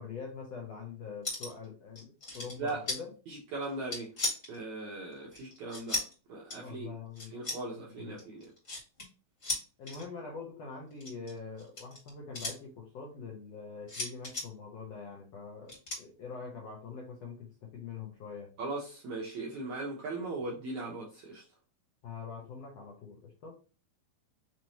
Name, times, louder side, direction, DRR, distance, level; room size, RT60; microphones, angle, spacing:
voice 1, 0.0-3.1 6.6-7.3 8.0-8.2 9.8-18.5 22.0-23.6, left 5 dB, 80° left, 1.4 m, -44 dB
sound 1, 1.2-1.6 2.0-3.0 3.6-4.6 5.3-6.1 6.5-6.6 7.2-7.6 8.2-9.1 9.4-10.0 10.9-12.6 13.9-14.5 15.7-16.0, left 2 dB, 30° left, 1.5 m, -36 dB
voice 2, 3.3-4.1 4.5-7.0 7.3-8.5 18.6-21.4, right 3 dB, 70° right, 1.8 m, -39 dB
6.0 x 3.1 x 2.8 m
omnidirectional pair, 4.5 m